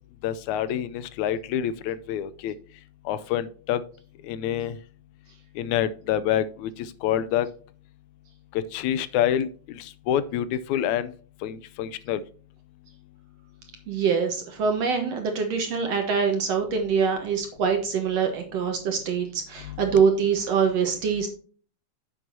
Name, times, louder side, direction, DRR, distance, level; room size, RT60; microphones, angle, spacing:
voice 1, 0.2-2.5 3.1-3.8 4.3-4.8 5.6-7.5 8.5-11.1 11.4-12.2 19.7-19.8, left 10 dB, 80° left, 15 dB, 1.9 m, -27 dB
voice 2, 13.9-21.3, right 6 dB, 65° right, 4 dB, 2.1 m, -24 dB
9.8 x 7.8 x 2.7 m, 0.42 s
omnidirectional pair, 3.5 m